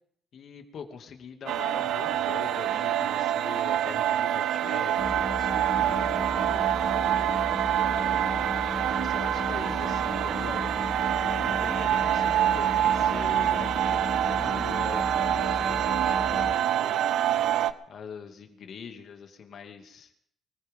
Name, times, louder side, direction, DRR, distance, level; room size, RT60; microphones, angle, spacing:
voice 1, 0.3-7.2 7.8-8.6 8.9-10.7 11.2-17.0 17.9-20.1, left 6 dB, 65° left, 5 dB, 2.4 m, -43 dB
sound 1, 1.5-17.7, right 11 dB, 80° right, 0.8 m, -26 dB
sound 2, 5.0-16.5, left 3 dB, 20° left, 0.6 m, -36 dB
24.0 x 15.5 x 3.8 m, 0.65 s
cardioid pair, 90°, 0 cm